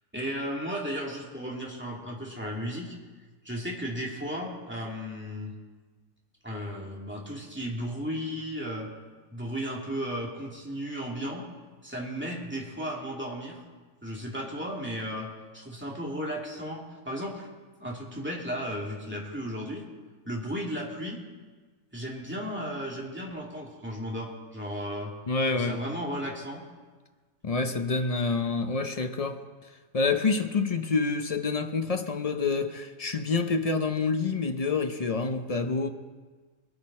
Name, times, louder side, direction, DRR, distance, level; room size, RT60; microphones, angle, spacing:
voice 1, 0.1-3.0 3.4-5.5 6.4-8.9 9.3-11.5 11.8-13.6 14.0-15.3 15.5-17.5 17.8-19.9 20.3-21.2 21.9-25.1 25.5-26.6, equal, 5° right, 2.3 m, -34 dB
voice 2, 25.3-25.8 27.4-29.4 29.9-35.9, left 4 dB, 50° left, 0.4 m, -27 dB
21.5 x 9.8 x 4.3 m
omnidirectional pair, 1.6 m